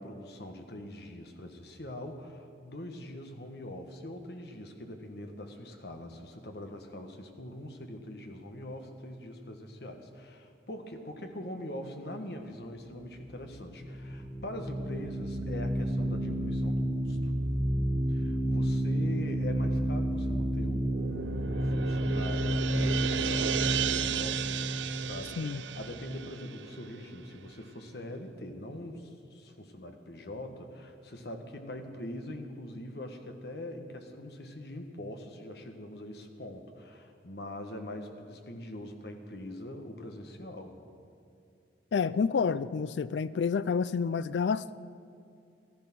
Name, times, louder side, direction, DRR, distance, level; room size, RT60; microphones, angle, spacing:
voice 1, 0.0-17.3 18.1-24.7 24.9-40.8, left 1 dB, 60° left, 5 dB, 1.3 m, -43 dB
sound 1, 13.2-26.4, right 1 dB, 10° right, 1.5 m, -31 dB
sound 2, 20.7-27.3, right 9 dB, 85° right, 0.5 m, -35 dB
voice 2, 41.9-44.7, left 5 dB, 80° left, 17 dB, 0.4 m, -29 dB
14.5 x 13.5 x 6.0 m, 2.4 s
head